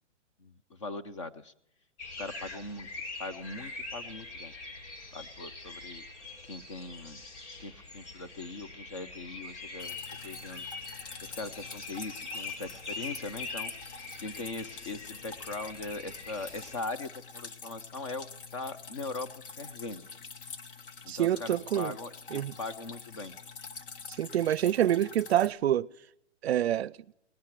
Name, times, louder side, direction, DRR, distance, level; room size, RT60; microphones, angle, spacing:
voice 1, 0.4-1.5 2.2-2.9 3.2-4.5 5.1-7.2 7.6-10.0 10.2-10.7 11.2-13.7 14.2-18.3 18.5-20.1 21.0-23.3, left 3 dB, 25° left, 0.5 m, -40 dB
sound 1, 2.0-16.8, left 3 dB, 75° left, 3.8 m, -43 dB
Drip, 9.8-25.5, left 5 dB, 50° left, 1.2 m, -46 dB
voice 2, 21.1-21.9 22.3-22.5 24.2-25.9 26.4-26.9, right 11 dB, 60° right, 0.5 m, -27 dB
19.0 x 10.0 x 4.7 m
hypercardioid pair, 160°, 35 cm